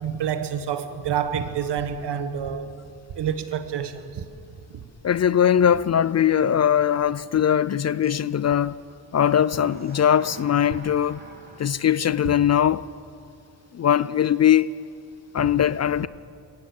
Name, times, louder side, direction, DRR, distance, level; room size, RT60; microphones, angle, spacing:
voice 1, 0.0-2.7 3.1-4.2 4.7-4.8, right 8 dB, 70° right, 1.7 m, -28 dB
sound 1, 2.7-2.9 3.5-3.6 8.0-8.2 9.4-11.7, right 2 dB, 20° right, 3.1 m, -45 dB
voice 2, 5.0-8.8 9.1-11.2 11.6-12.9 13.7-14.7 15.3-16.1, left 9 dB, 40° left, 0.5 m, -20 dB
22.0 x 18.0 x 7.7 m
cardioid pair, 80°, 43 cm